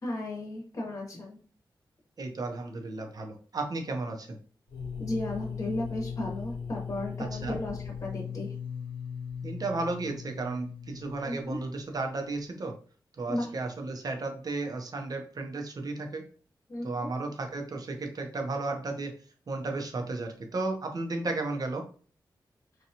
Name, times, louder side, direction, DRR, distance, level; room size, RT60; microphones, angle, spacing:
voice 1, 0.0-1.4 5.0-8.5 11.2-11.6 13.3-13.5 16.7-17.1, left 1 dB, 40° left, -2 dB, 0.9 m, -34 dB
voice 2, 2.2-4.4 7.3-7.6 9.4-12.7 13.2-16.2 16.8-19.1 19.5-21.9, right 3 dB, 50° right, 4 dB, 0.6 m, -34 dB
sound 1, 4.7-12.4, left 7 dB, 75° left, 0.8 m, -39 dB
2.7 x 2.2 x 2.8 m, 0.41 s
cardioid pair, 80°, 8 cm